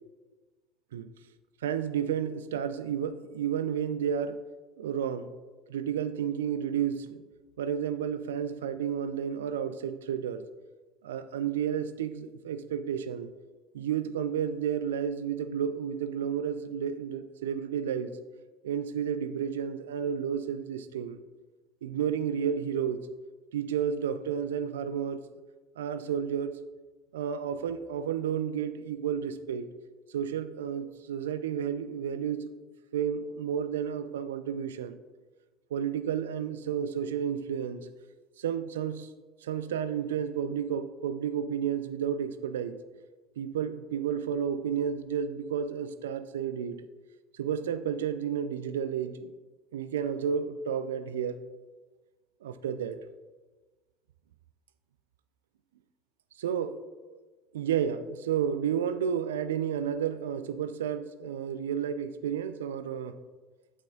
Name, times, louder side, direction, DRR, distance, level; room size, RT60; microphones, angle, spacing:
voice 1, 1.6-4.4 4.8-5.3 5.7-7.2 7.6-10.4 11.0-13.3 13.7-18.2 18.6-21.2 21.8-23.1 23.5-25.2 25.8-26.6 27.1-29.7 30.1-32.5 32.9-35.0 35.7-37.9 38.4-39.1 39.4-42.8 43.4-46.8 47.3-49.3 49.7-51.5 52.4-53.0 56.4-56.7 57.1-57.2 57.5-63.2, right 8 dB, 80° right, 12 dB, 0.4 m, -31 dB
8.3 x 7.2 x 3.8 m, 1.3 s
hypercardioid pair, 65°, 0 cm